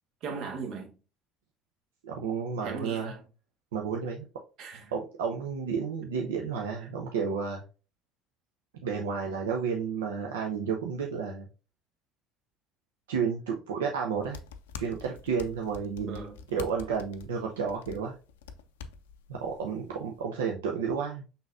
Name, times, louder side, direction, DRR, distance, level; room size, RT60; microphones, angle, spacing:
voice 1, 0.2-0.9 2.6-3.3 4.6-4.9 6.8-6.9 16.1-16.4, right 5 dB, 60° right, 1.1 m, -38 dB
voice 2, 2.0-3.1 3.7-4.3 4.9-7.6 8.8-11.5 13.1-14.4 14.8-16.2 16.5-18.1 19.3-21.2, right 6 dB, 80° right, 0.6 m, -31 dB
sound 1, 14.2-20.2, left 6 dB, 80° left, 0.4 m, -46 dB
5.4 x 3.9 x 2.4 m
hypercardioid pair, 65°, 0 cm